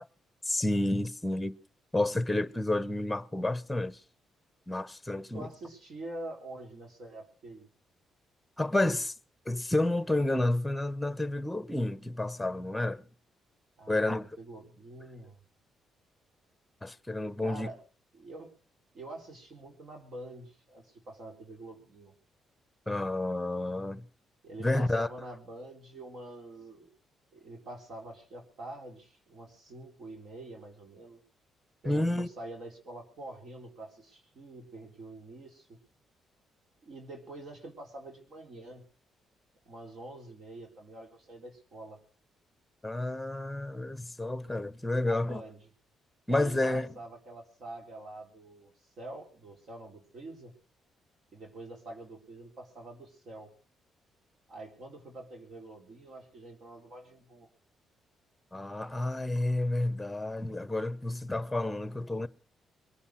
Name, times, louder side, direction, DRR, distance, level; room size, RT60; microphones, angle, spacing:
voice 1, 0.4-1.5 1.9-4.0 4.7-5.5 8.6-9.1 9.5-13.0 13.9-14.4 16.8-17.7 22.9-24.1 24.6-25.1 31.8-32.3 42.8-45.4 46.3-46.9 58.5-62.3, left 2 dB, 10° left, 1.1 m, -30 dB
voice 2, 5.1-7.7 13.8-15.4 17.4-17.8 18.1-18.5 18.9-22.1 24.4-26.9 27.3-31.2 31.8-35.7 36.8-38.8 39.6-42.0 45.0-45.6 46.3-48.7 49.0-50.5 51.3-53.5 54.5-57.5, right 2 dB, 60° right, 4.5 m, -46 dB
22.5 x 9.8 x 6.4 m
cardioid pair, 90°, 0 cm